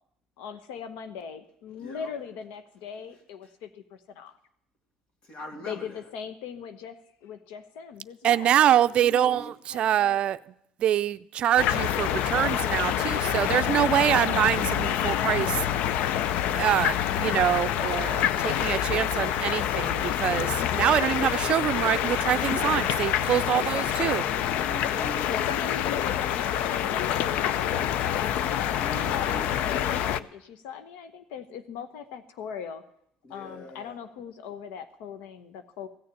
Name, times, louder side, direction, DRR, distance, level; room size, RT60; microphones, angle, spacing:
voice 1, 0.4-4.4 5.7-8.6 9.1-9.4 9.7-10.2 13.4-14.0 18.3-18.6 20.4-20.8 23.3-23.9 24.9-28.4 29.1-32.8 33.3-35.9, left 7 dB, 90° left, 1.0 m, -40 dB
voice 2, 1.8-2.1 5.2-6.0 8.9-9.5 24.4-25.3 28.7-29.5 33.2-33.9, equal, 45° left, 3.0 m, -42 dB
voice 3, 8.2-10.4 10.8-15.6 16.5-24.3, right 11 dB, 50° right, 0.5 m, -25 dB
sound 1, 11.6-30.2, left 10 dB, 70° left, 0.6 m, -27 dB
16.0 x 6.9 x 9.5 m
cardioid pair, 130°, 2 cm